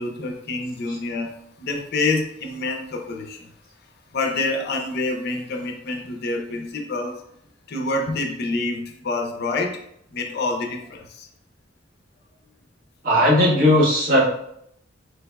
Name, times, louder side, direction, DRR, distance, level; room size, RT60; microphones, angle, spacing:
voice 1, 0.0-1.3 1.6-3.5 4.1-7.2 7.7-9.8 10.1-11.3, left 2 dB, 55° left, 2 dB, 0.6 m, -27 dB
voice 2, 13.0-14.2, left 1 dB, 50° right, -5 dB, 1.3 m, -17 dB
4.6 x 3.4 x 2.3 m, 0.74 s
head